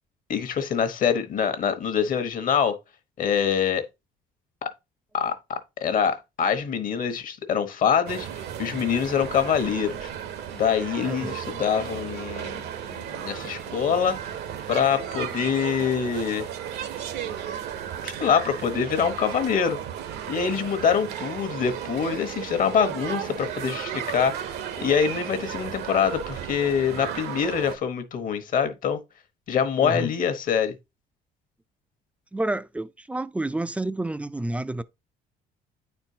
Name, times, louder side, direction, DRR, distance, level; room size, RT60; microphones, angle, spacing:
voice 1, 0.3-2.8 3.2-3.8 4.6-4.7 5.1-10.1 10.5-12.6 12.9-14.2 14.7-16.5 18.0-19.8 20.3-24.3 24.8-29.0 29.5-30.8, left 7 dB, 55° left, 1.1 m, -25 dB
sound 1, 8.1-27.8, right 9 dB, 75° right, 0.9 m, -34 dB
voice 2, 11.0-11.3 29.8-30.1 32.3-34.8, right 2 dB, 10° right, 0.3 m, -29 dB
8.9 x 4.4 x 2.7 m
cardioid pair, 110°, 17 cm